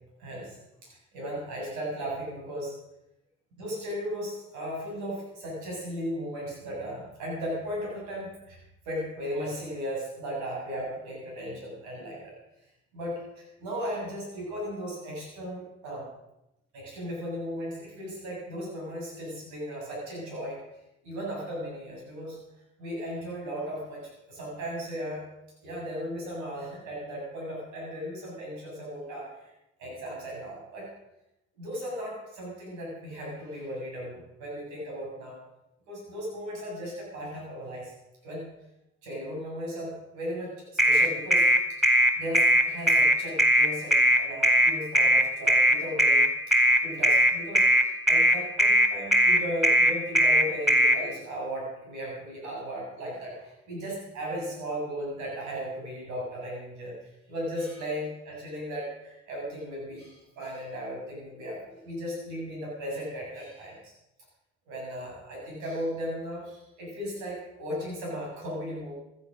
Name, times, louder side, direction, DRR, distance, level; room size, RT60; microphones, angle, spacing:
voice 1, 0.2-2.8 3.6-8.6 8.9-12.3 12.9-16.0 16.7-20.6 21.0-22.4 22.8-25.3 25.6-29.3 29.8-30.9 31.6-35.4 35.9-37.9 38.2-38.4 39.0-41.8 42.2-46.3 46.8-63.9 64.7-68.9, equal, 85° right, -3 dB, 7.4 m, -36 dB
sound 1, 40.8-51.0, right 1 dB, ahead, 4.0 m, -19 dB
16.0 x 12.5 x 6.5 m, 0.89 s
supercardioid pair, 60°, 29 cm